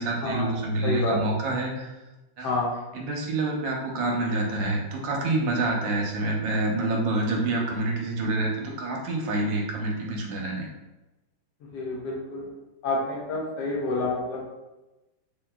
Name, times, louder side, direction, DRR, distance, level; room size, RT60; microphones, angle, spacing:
voice 1, 0.0-1.9 2.4-2.5 2.9-10.7, right 2 dB, 70° right, -1 dB, 1.3 m, -27 dB
voice 2, 0.8-1.2 2.4-2.7 11.7-12.5 12.8-14.4, left 2 dB, 65° left, -3 dB, 1.1 m, -28 dB
3.7 x 2.8 x 2.2 m, 1.0 s
omnidirectional pair, 2.3 m